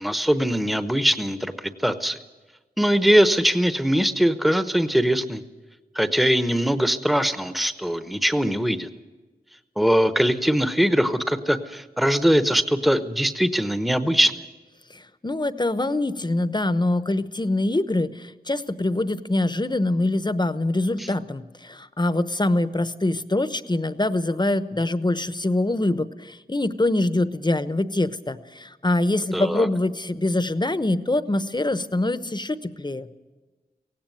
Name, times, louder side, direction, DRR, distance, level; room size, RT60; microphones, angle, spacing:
voice 1, 0.0-2.2 2.8-5.4 5.9-8.9 9.8-14.3 21.0-21.1 29.3-29.7, equal, ahead, 11 dB, 1.0 m, -21 dB
voice 2, 14.9-33.1, left 2 dB, 25° left, 13 dB, 1.0 m, -24 dB
17.5 x 16.5 x 9.3 m, 1.2 s
wide cardioid pair, 55°, 16 cm